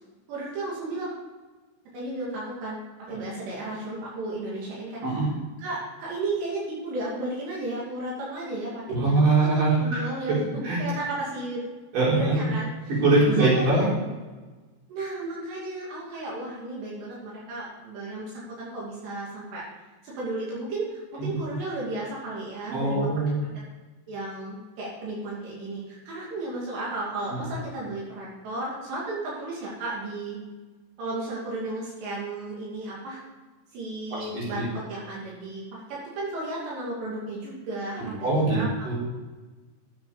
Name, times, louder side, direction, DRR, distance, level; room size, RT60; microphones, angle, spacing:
voice 1, 0.3-1.1 1.9-2.8 3.1-5.1 5.6-9.5 9.8-11.6 12.1-12.7 13.3-13.9 14.9-19.6 20.0-23.1 24.1-30.4 31.0-33.2 33.7-34.6 34.9-38.7, right 2 dB, 85° right, -5 dB, 4.7 m, -34 dB
voice 2, 8.9-10.4 10.6-10.8 11.9-12.5 13.0-13.9 22.7-23.4 27.3-27.4 34.1-34.6 38.0-38.6 38.9-39.0, right 2 dB, 55° right, -6 dB, 5.7 m, -23 dB
12.5 x 7.8 x 5.0 m, 1.3 s
omnidirectional pair, 4.8 m